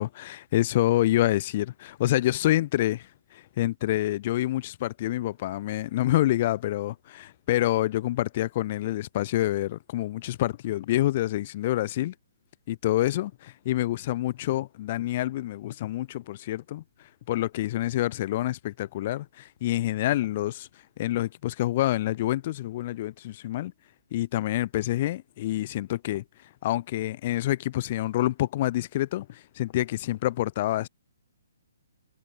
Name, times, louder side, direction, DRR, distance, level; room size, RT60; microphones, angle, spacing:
voice 1, 0.0-12.1 12.7-20.7 21.0-23.7 24.1-26.2 26.6-30.9, left 15 dB, 40° left, 0.9 m, -27 dB
hypercardioid pair, 155°, 0 cm